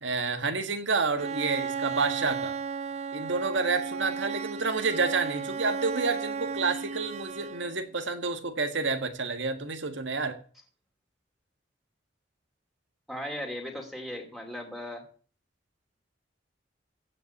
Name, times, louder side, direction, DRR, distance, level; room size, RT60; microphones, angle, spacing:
voice 1, 0.0-2.6 3.1-10.4, right 4 dB, 75° right, 8 dB, 1.6 m, -29 dB
Bowed string instrument, 1.2-7.9, right 5 dB, 35° right, 0.6 m, -34 dB
voice 2, 13.1-15.0, left 1 dB, ahead, 2 dB, 2.4 m, -37 dB
15.5 x 5.6 x 8.1 m, 0.42 s
head